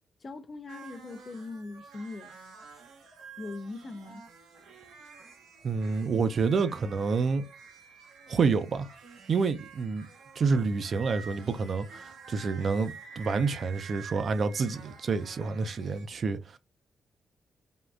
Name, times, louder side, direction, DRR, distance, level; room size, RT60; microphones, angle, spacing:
voice 1, 0.2-2.3 3.4-4.2, left 3 dB, 45° left, 0.4 m, -40 dB
sound 1, 0.7-16.1, right 5 dB, 90° right, 0.8 m, -49 dB
voice 2, 5.6-7.4 8.3-8.9 9.3-10.1 10.4-16.6, right 4 dB, 60° right, 0.4 m, -28 dB
3.5 x 2.2 x 2.4 m
cardioid pair, 70°, 0 cm